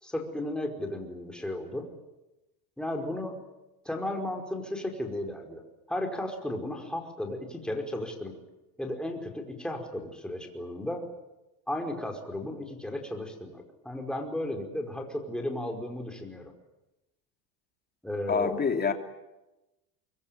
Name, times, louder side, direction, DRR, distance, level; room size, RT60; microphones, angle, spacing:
voice 1, 0.0-1.9 2.8-3.4 3.9-5.6 5.9-8.4 8.8-11.0 11.7-16.5 18.0-18.6, left 1 dB, ahead, 2 dB, 5.0 m, -34 dB
voice 2, 18.3-18.9, left 5 dB, 20° left, 5 dB, 3.0 m, -26 dB
24.0 x 24.0 x 9.2 m, 1.0 s
supercardioid pair, 125°, 49 cm